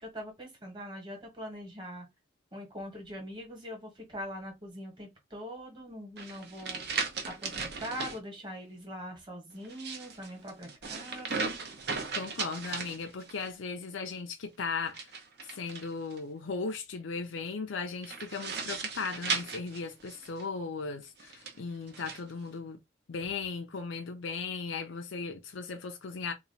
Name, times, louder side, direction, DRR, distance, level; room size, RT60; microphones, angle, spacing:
voice 1, 0.0-2.1 2.5-7.0 7.2-11.5, equal, 25° right, 1.4 m, -42 dB
sound 1, 6.2-8.2 9.6-13.5 14.9-16.2 18.0-20.4 21.2-22.2, right 4 dB, 55° right, 0.9 m, -37 dB
voice 2, 12.1-22.8 23.1-26.3, left 4 dB, 75° left, 0.5 m, -37 dB
2.9 x 2.3 x 4.0 m
head